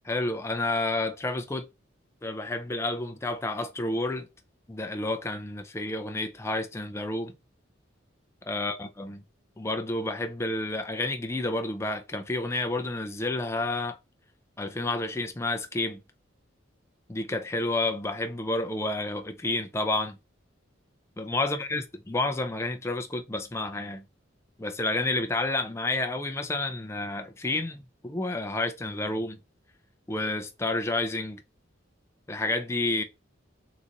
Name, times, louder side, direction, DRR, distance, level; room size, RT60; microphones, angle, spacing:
voice 1, 0.1-1.7 2.2-4.3 4.7-7.3 8.5-9.2 9.6-14.0 14.6-16.0 17.1-20.2 21.2-24.0 24.6-29.4 30.1-31.4 32.3-33.0, left 2 dB, 15° left, 0.4 m, -30 dB
3.9 x 2.5 x 2.9 m
head